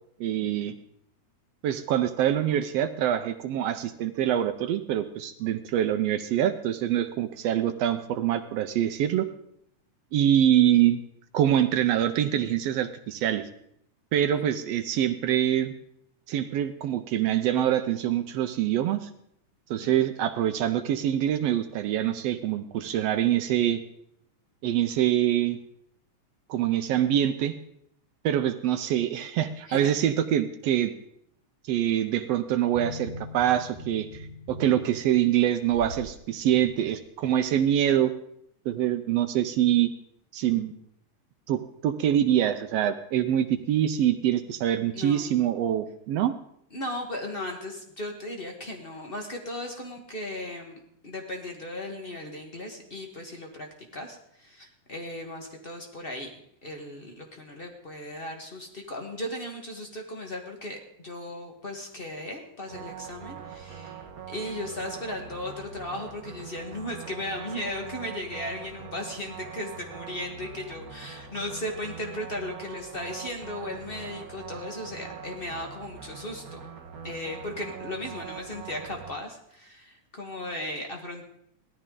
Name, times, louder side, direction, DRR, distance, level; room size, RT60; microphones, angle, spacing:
voice 1, 0.2-0.7 1.6-9.3 10.1-11.0 11.3-13.4 14.1-15.7 16.3-19.1 19.7-23.8 24.6-25.6 26.5-27.5 28.2-30.9 31.7-38.1 38.7-39.9 40.3-40.7 41.5-46.3, right 11 dB, 80° right, 9 dB, 1.5 m, -25 dB
sound 1, 32.7-36.1 36.6-36.7, left 2 dB, 20° left, 1.7 m, -41 dB
voice 2, 44.9-45.4 46.7-53.7 53.9-76.6 77.0-81.3, left 1 dB, 65° left, 3 dB, 0.5 m, -36 dB
sound 2, 62.7-79.1, right 7 dB, 50° right, 1.1 m, -43 dB
17.5 x 13.0 x 3.7 m, 0.74 s
omnidirectional pair, 3.5 m